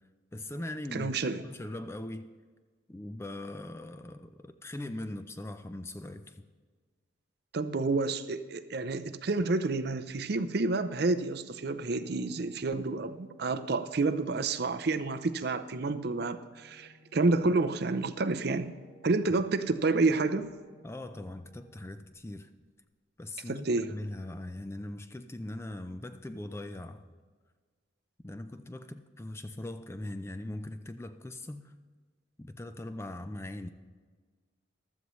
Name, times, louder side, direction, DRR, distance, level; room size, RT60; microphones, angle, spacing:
voice 1, 0.3-1.1 1.4-2.3 2.9-6.4 19.3-19.4 20.8-22.5 23.2-27.0 28.2-31.7 32.4-33.7, left 1 dB, 15° left, 9 dB, 0.4 m, -40 dB
voice 2, 0.9-1.4 7.5-18.7 19.0-20.5 23.5-23.9, right 3 dB, 55° right, 11 dB, 0.5 m, -29 dB
Organ, 11.5-22.4, left 1 dB, 45° left, 2.2 m, -61 dB
15.0 x 12.5 x 3.1 m, 1.5 s
head